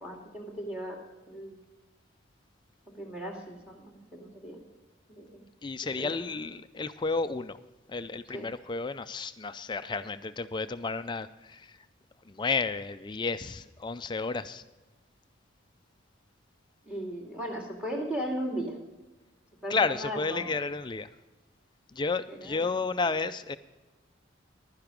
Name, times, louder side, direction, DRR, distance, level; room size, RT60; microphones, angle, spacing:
voice 1, 0.0-1.0 1.3-1.6 2.9-4.6 5.1-5.4 6.0-6.2 8.3-8.5 16.8-18.7 19.6-20.5 22.3-22.7, right 1 dB, 5° right, 0 dB, 2.3 m, -37 dB
voice 2, 5.6-7.6 7.9-11.8 12.3-14.6 19.7-21.1 21.9-23.6, left 4 dB, 20° left, 12 dB, 0.4 m, -32 dB
11.5 x 10.5 x 5.1 m, 1.2 s
head